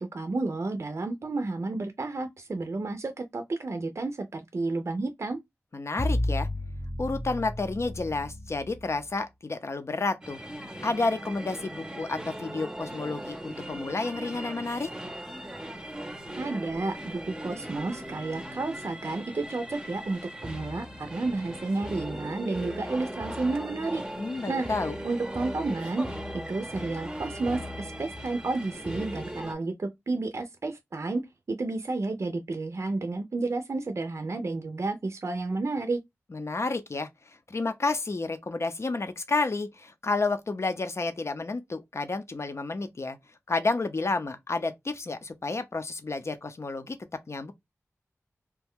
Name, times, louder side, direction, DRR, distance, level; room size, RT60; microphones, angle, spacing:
voice 1, 0.0-5.4 16.4-24.0 24.5-24.7 25.0-26.2 26.5-31.2 31.5-36.0, right 3 dB, 60° right, 0.5 m, -31 dB
voice 2, 5.7-6.5 7.0-10.4 10.8-14.9 24.2-25.0 36.3-37.1 37.5-43.2 43.5-47.0 47.3-47.5, left 3 dB, 55° left, 0.6 m, -30 dB
sound 1, 6.0-9.1, left 1 dB, 25° left, 0.8 m, -32 dB
sound 2, 10.2-29.5, equal, 15° right, 0.7 m, -39 dB
2.9 x 2.2 x 3.5 m
cardioid pair, 45°, 5 cm